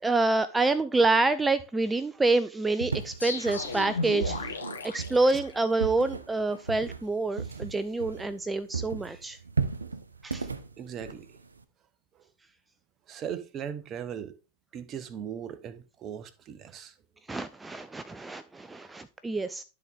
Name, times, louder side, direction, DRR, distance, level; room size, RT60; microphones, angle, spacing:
voice 1, 0.0-9.4 10.2-10.5 17.3-19.6, right 3 dB, 10° right, 0.3 m, -27 dB
sound 1, 2.8-8.5 8.7-11.6, right 5 dB, 75° right, 0.6 m, -35 dB
sound 2, 3.2-6.0, left 3 dB, 75° left, 1.4 m, -35 dB
voice 2, 10.8-11.4 12.1-12.2 13.1-14.4 14.7-17.0 17.4-17.5, right 8 dB, 30° right, 0.7 m, -39 dB
12.0 x 4.0 x 3.4 m
figure-of-eight pair, 90°, 0 cm